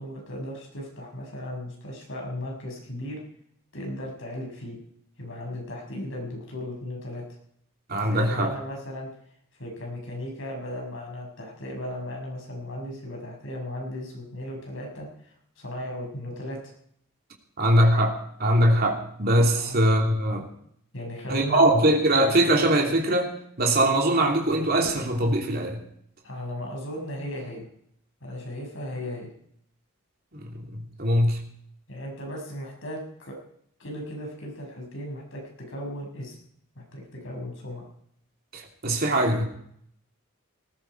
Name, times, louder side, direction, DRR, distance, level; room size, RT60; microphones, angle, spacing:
voice 1, 0.0-3.2 3.7-4.8 5.2-7.2 8.0-9.1 9.6-16.6 19.5-19.8 20.9-21.7 26.2-27.7 28.2-29.3 31.9-33.3 33.8-35.4 35.7-36.3 36.8-37.9, left 1 dB, 65° left, 0 dB, 6.3 m, -36 dB
voice 2, 7.9-8.5 17.6-20.5 21.3-23.3 23.6-25.8 30.3-31.4 38.5-39.4, right 1 dB, 45° right, 1 dB, 3.0 m, -22 dB
19.0 x 15.0 x 4.7 m, 0.67 s
head